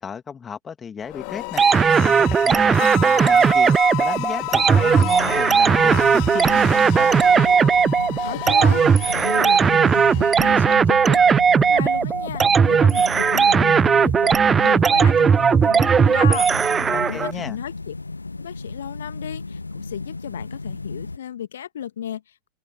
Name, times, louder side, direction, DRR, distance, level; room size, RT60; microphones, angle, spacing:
voice 1, 0.0-1.6 2.0-7.1 16.7-17.6, left 6 dB, 20° left, 2.5 m, -34 dB
sound 1, 1.0-11.0, left 40 dB or more, 45° left, 3.3 m, -32 dB
sound 2, 1.6-17.3, right 6 dB, 20° right, 0.4 m, -17 dB
sound 3, 4.6-21.2, left 3 dB, 80° left, 1.0 m, -34 dB
voice 2, 8.2-17.9 18.4-22.5, left 10 dB, 65° left, 1.6 m, -34 dB
open air
figure-of-eight pair, 90°, 0 cm